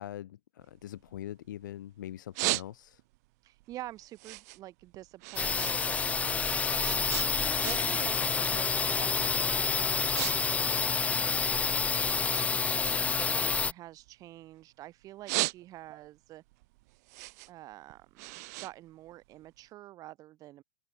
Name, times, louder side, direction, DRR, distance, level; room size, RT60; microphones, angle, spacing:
voice 1, 0.0-3.0, left 12 dB, 75° left, 3.1 m, -42 dB
sound 1, 0.6-1.7 2.1-3.2 3.6-5.8 6.1-8.1 8.4-8.7 9.3-9.5 9.8-10.3 10.6-11.8 12.3-14.6 15.0-16.1 16.5-19.6, right 24 dB, 55° right, 0.8 m, -36 dB
voice 2, 3.4-7.4 7.6-11.5 12.0-16.4 17.5-20.6, right 15 dB, 35° right, 1.3 m, -47 dB
sound 2, 5.4-13.7, left 5 dB, 15° left, 0.6 m, -28 dB
open air
hypercardioid pair, 120°, 10 cm